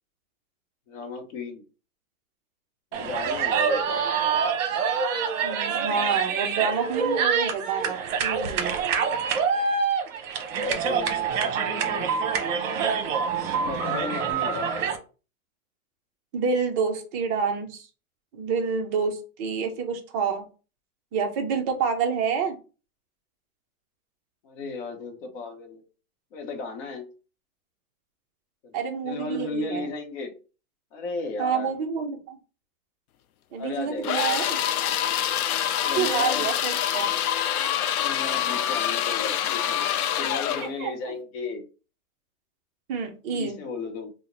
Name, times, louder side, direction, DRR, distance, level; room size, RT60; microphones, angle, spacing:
voice 1, 0.9-1.6 2.9-4.0 10.6-12.5 13.6-14.7 24.4-25.8 26.3-27.1 28.6-28.7 29.0-30.3 30.9-31.7 33.6-34.3 35.8-36.5 37.9-39.9 40.2-41.6 43.3-44.1, left 3 dB, 45° left, 3 dB, 0.8 m, -35 dB
sound 1, 2.9-15.0, right 6 dB, 60° right, 0.9 m, -26 dB
voice 2, 5.4-8.8 16.3-17.9 18.3-20.4 21.1-22.6 28.7-29.9 31.4-32.4 33.5-34.6 36.0-37.2 40.6-41.1 42.9-43.6, right 6 dB, 25° right, 4 dB, 0.5 m, -28 dB
sound 2, 34.0-40.7, left 10 dB, 80° left, 0.6 m, -26 dB
2.8 x 2.1 x 3.8 m, 0.34 s
hypercardioid pair, 145°, 43 cm